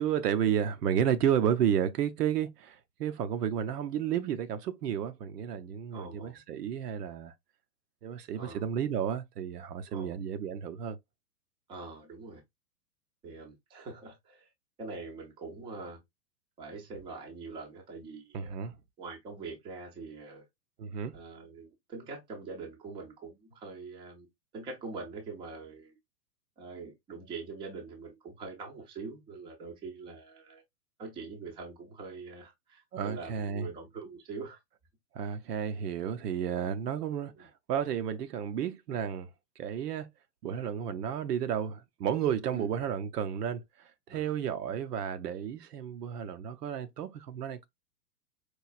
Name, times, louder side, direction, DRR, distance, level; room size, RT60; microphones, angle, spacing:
voice 1, 0.0-7.3 8.0-11.0 18.3-18.7 20.8-21.1 32.9-33.7 35.1-39.3 39.6-40.1 40.4-43.6 44.1-47.7, right 8 dB, 75° right, 0.7 m, -32 dB
voice 2, 5.9-6.4 8.3-8.7 9.9-10.2 11.7-12.4 13.2-14.5 14.8-16.0 16.6-18.6 19.0-20.4 21.1-24.3 24.5-26.0 26.6-30.6 31.0-34.6 37.4-37.5 42.5-42.7 44.1-44.3, right 4 dB, 10° right, 0.5 m, -43 dB
4.6 x 2.4 x 2.3 m
hypercardioid pair, 125°, 48 cm